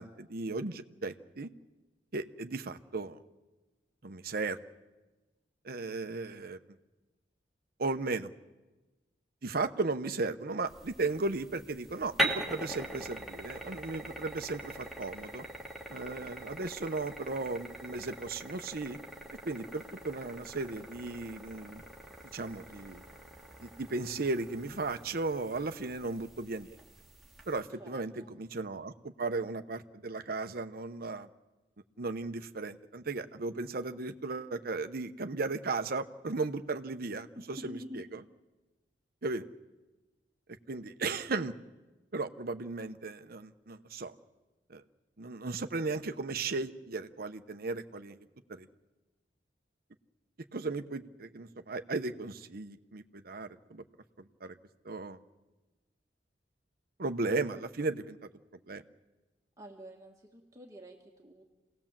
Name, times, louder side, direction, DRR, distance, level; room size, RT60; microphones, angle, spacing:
voice 1, 0.0-1.5 2.1-3.2 4.0-4.6 5.6-6.6 7.8-8.3 9.4-15.4 15.9-19.0 19.4-21.8 22.3-23.0 23.6-26.8 27.5-31.3 32.0-38.2 39.2-39.4 40.7-41.5 42.1-44.1 44.7-44.8 45.2-48.2 48.5-48.7 50.5-53.8 54.2-54.6 54.8-55.2 57.0-58.2 58.7-58.8, right 3 dB, 60° right, 8 dB, 0.9 m, -36 dB
sound 1, 10.7-27.6, equal, ahead, 1.9 m, -42 dB
voice 2, 27.8-28.3 37.3-38.0 59.6-61.4, equal, 20° right, 0 dB, 1.7 m, -48 dB
27.5 x 18.0 x 7.4 m, 1.2 s
head